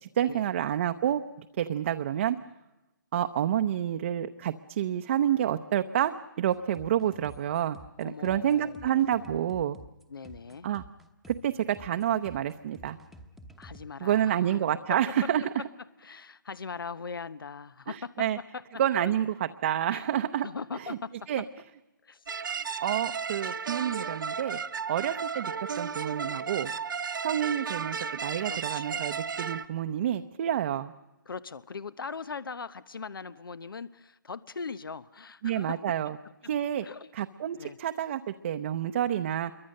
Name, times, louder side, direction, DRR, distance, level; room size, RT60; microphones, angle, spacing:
voice 1, 0.0-2.4 3.1-9.8 10.6-10.8 11.3-13.0 14.0-15.4 17.9-18.4 18.8-20.5 20.7-21.0 21.3-21.4 22.8-24.6 24.9-26.7 27.2-30.9 35.4-36.2 36.4-36.9 37.1-39.5, right 10 dB, 35° right, 7 dB, 0.7 m, -29 dB
sound 1, 6.5-13.8, right 1 dB, ahead, 1.0 m, -50 dB
voice 2, 8.0-9.4 10.1-10.7 13.6-14.6 14.9-15.5 16.0-18.6 19.0-19.1 19.9-20.1 20.4-21.1 22.0-22.2 28.4-29.1 31.3-35.8 36.8-37.1 37.6-37.8, left 5 dB, 85° left, 16 dB, 0.9 m, -40 dB
sound 2, 22.3-29.7, right 6 dB, 70° right, 1.2 m, -34 dB
26.5 x 23.0 x 6.6 m, 1.0 s
hypercardioid pair, 160°, 11 cm